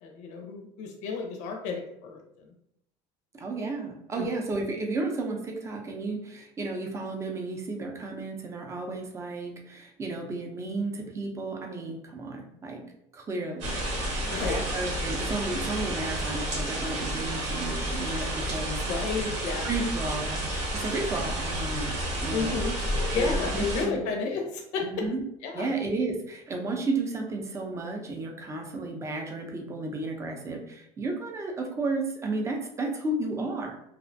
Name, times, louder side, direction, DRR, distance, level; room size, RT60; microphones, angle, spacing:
voice 1, 0.0-2.5 4.2-4.3 14.2-14.6 18.8-19.7 22.3-22.8 23.1-24.8 25.4-25.7, left 4 dB, 70° left, 2 dB, 0.5 m, -32 dB
voice 2, 3.3-12.8 13.1-13.8 14.5-18.8 19.2-19.3 19.6-20.4 20.7-22.6 23.1-24.0 24.8-25.2 25.5-33.7, right 2 dB, 20° right, 2 dB, 0.5 m, -33 dB
sound 1, 13.6-23.8, right 1 dB, 75° right, 1.0 m, -31 dB
2.5 x 2.1 x 2.5 m, 0.75 s
cardioid pair, 125°, 13 cm